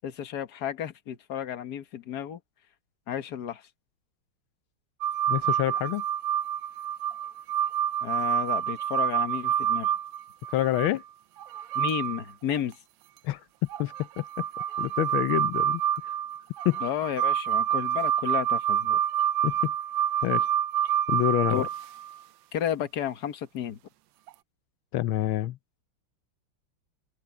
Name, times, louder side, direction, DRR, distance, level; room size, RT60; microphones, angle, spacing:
voice 1, 0.0-2.4 3.1-3.7 8.0-9.9 11.8-12.8 16.8-19.0 21.5-21.7 22.5-23.8, left 9 dB, 55° left, 1.7 m, -32 dB
sound 1, 5.0-10.9 11.4-12.2 12.5-12.6 13.7-22.2 24.3-24.4, right 10 dB, 75° right, 1.4 m, -27 dB
voice 2, 5.3-6.0 10.5-11.0 13.2-13.4 13.8-14.2 14.8-15.8 16.6-16.8 19.4-19.7 20.2-20.5 21.1-21.7 24.9-25.6, left 14 dB, 85° left, 1.5 m, -27 dB
open air
omnidirectional pair, 2.2 m